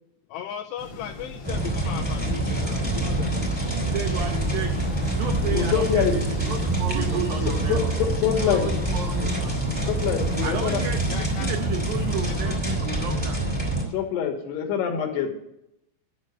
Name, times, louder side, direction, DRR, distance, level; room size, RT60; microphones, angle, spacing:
voice 1, 0.3-3.7 11.1-11.5 12.2-12.8 13.1-13.2, left 10 dB, 90° left, 4 dB, 2.4 m, -38 dB
sound 1, 0.8-12.6, left 3 dB, 45° left, 2.2 m, -39 dB
sound 2, 1.4-13.8, right 1 dB, 10° right, 2.0 m, -26 dB
voice 2, 3.9-6.5 6.9-7.8 10.4-13.4, right 7 dB, 85° right, 5 dB, 2.0 m, -33 dB
voice 3, 5.4-6.1 7.7-8.6 9.8-10.8 13.9-15.3, left 8 dB, 70° left, 2 dB, 3.3 m, -25 dB
voice 4, 6.4-8.0 8.3-9.9, right 4 dB, 60° right, 1 dB, 2.7 m, -35 dB
12.0 x 6.8 x 8.2 m, 0.81 s
omnidirectional pair, 5.6 m